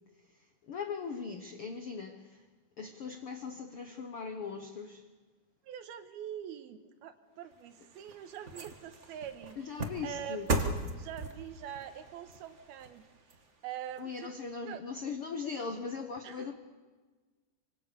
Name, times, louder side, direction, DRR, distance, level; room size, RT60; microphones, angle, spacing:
voice 1, 0.2-2.5 2.8-5.0 9.6-10.5 14.0-16.5, left 5 dB, 85° left, 6 dB, 1.2 m, -40 dB
voice 2, 5.6-9.8 10.0-10.4 11.0-13.1 13.6-14.3 14.6-14.8 16.2-16.5, right 10 dB, 75° right, 9 dB, 3.1 m, -44 dB
sound 1, 7.5-14.0 14.4-14.5, right 2 dB, 60° right, 0.7 m, -38 dB
25.5 x 25.0 x 6.9 m, 1.4 s
omnidirectional pair, 4.5 m